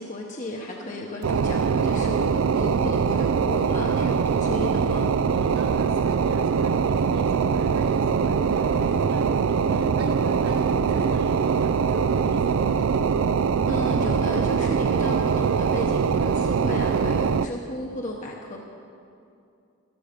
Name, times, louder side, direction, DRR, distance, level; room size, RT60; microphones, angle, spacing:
voice 1, 0.0-5.1 13.7-18.6, left 1 dB, 35° left, -1 dB, 0.9 m, -34 dB
voice 2, 0.7-1.1 5.3-12.8, equal, 50° right, -2 dB, 1.5 m, -40 dB
sound 1, 1.2-17.5, right 6 dB, 75° right, 0.4 m, -22 dB
14.0 x 12.5 x 5.1 m, 2.5 s
head